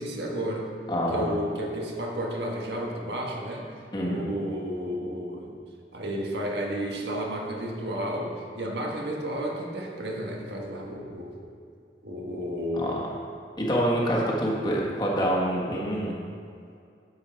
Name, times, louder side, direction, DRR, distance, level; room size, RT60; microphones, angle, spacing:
voice 1, 0.0-0.7 1.1-3.7 4.0-5.6 5.9-11.3 12.0-12.9 14.0-14.4, equal, 80° right, 0 dB, 1.5 m, -32 dB
voice 2, 0.9-1.3 3.9-4.2 12.7-13.0 13.6-16.1, equal, 25° left, -3 dB, 1.5 m, -26 dB
10.5 x 7.8 x 4.4 m, 2.4 s
head